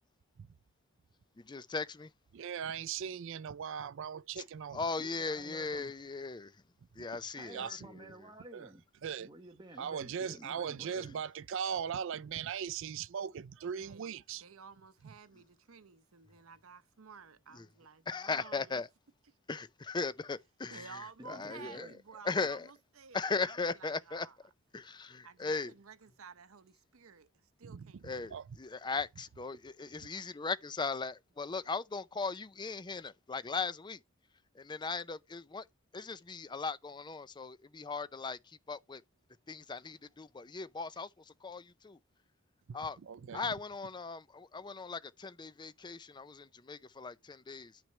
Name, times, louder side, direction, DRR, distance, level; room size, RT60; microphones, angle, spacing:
voice 1, 1.4-2.1 4.4-4.5 4.7-6.6 7.0-8.0 11.0-11.1 17.5-17.7 18.1-18.9 19.5-21.9 22.2-22.7 23.1-24.3 24.7-25.7 28.0-34.0 34.5-35.7 35.9-39.0 39.5-42.0 42.7-43.0 43.3-47.8, left 4 dB, 20° left, 0.5 m, -38 dB
voice 2, 2.3-4.8 7.5-7.7 8.5-8.7 9.0-9.3 9.8-14.4 27.6-28.5 42.7-43.5, right 7 dB, 65° right, 0.4 m, -39 dB
voice 3, 5.0-5.9 7.3-8.8 9.2-11.2 21.2-22.0, right 1 dB, 20° right, 1.3 m, -52 dB
voice 4, 13.8-18.8 20.7-24.4 25.2-27.3 27.6-28.3, right 5 dB, 85° right, 0.8 m, -53 dB
10.0 x 6.0 x 3.2 m
head